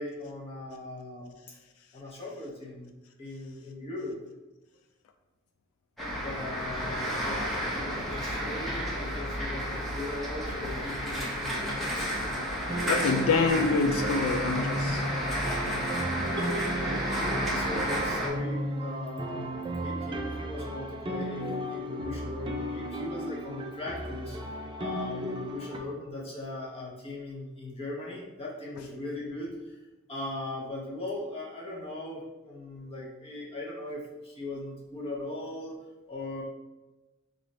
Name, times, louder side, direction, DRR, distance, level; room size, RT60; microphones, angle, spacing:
voice 1, 0.0-1.4 1.9-4.2 6.1-12.4 15.5-15.8 16.2-24.4 24.8-29.8 30.1-35.8 36.1-36.4, left 2 dB, 30° left, -4 dB, 1.0 m, -39 dB
sound 1, 6.0-18.3, equal, ahead, 0.7 m, -32 dB
sound 2, 12.7-25.8, right 1 dB, 25° right, 0.4 m, -35 dB
voice 2, 12.9-15.0, left 4 dB, 85° left, 6 dB, 0.3 m, -26 dB
3.2 x 2.6 x 4.1 m, 1.1 s
head